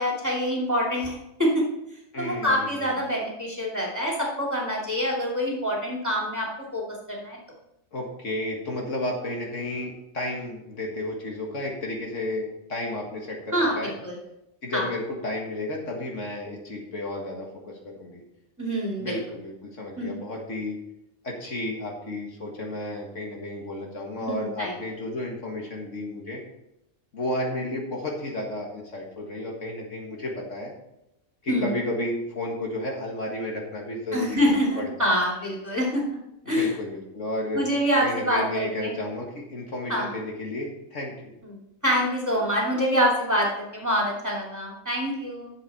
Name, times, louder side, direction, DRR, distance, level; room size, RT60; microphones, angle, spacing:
voice 1, 0.0-1.6 2.2-6.8 7.1-7.4 13.5-14.2 14.7-14.9 18.6-19.2 20.0-20.2 24.2-24.7 31.5-31.7 34.1-36.2 36.5-36.7 37.5-38.9 39.9-40.1 41.8-45.5, equal, 10° right, -3 dB, 2.6 m, -26 dB
voice 2, 2.1-2.9 7.9-13.9 14.6-18.2 19.0-20.8 21.2-26.4 27.1-30.7 31.4-34.5 34.8-35.3 36.5-37.7 38.0-41.3, left 1 dB, 60° left, -1 dB, 2.0 m, -32 dB
11.5 x 7.6 x 4.2 m, 0.86 s
omnidirectional pair, 1.5 m